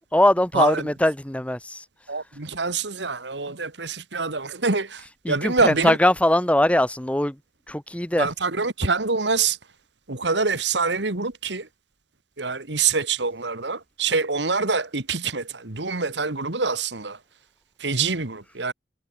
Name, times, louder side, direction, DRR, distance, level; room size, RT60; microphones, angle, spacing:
voice 1, 0.1-1.8 5.2-7.4 7.7-8.3, left 1 dB, 5° left, 1.3 m, -21 dB
voice 2, 2.1-6.0 8.2-9.6 10.1-11.7 12.4-17.2 17.8-18.7, right 4 dB, 75° right, 2.2 m, -25 dB
head